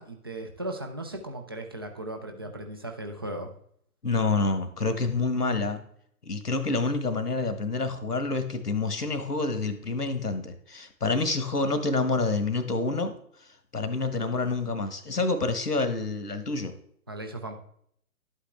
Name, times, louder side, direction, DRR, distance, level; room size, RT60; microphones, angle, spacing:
voice 1, 0.0-3.5 17.1-17.6, right 1 dB, 15° right, 4 dB, 0.5 m, -37 dB
voice 2, 4.0-5.8 6.3-13.1 13.7-16.7, left 3 dB, 85° left, 9 dB, 1.5 m, -27 dB
11.5 x 8.2 x 3.4 m, 0.65 s
figure-of-eight pair, 125°, 46 cm